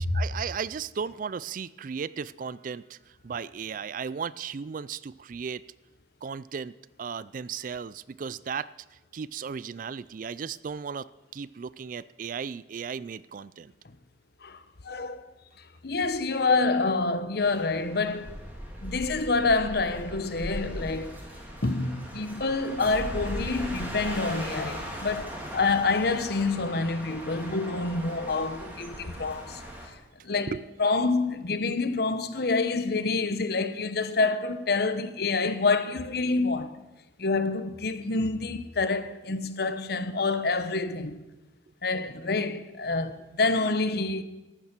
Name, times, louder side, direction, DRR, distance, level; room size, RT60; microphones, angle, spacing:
voice 1, 0.0-5.6 6.2-8.7 9.1-13.7 30.5-30.6, right 6 dB, 50° right, 0.4 m, -35 dB
voice 2, 14.4-15.2 15.8-18.4 18.8-21.2 21.6-29.6 30.2-30.5 30.8-36.8 37.2-41.2 41.8-44.2, left 3 dB, 60° left, 0.9 m, -27 dB
sound 1, 17.4-29.9, equal, 10° right, 3.1 m, -39 dB
14.0 x 11.0 x 6.0 m
head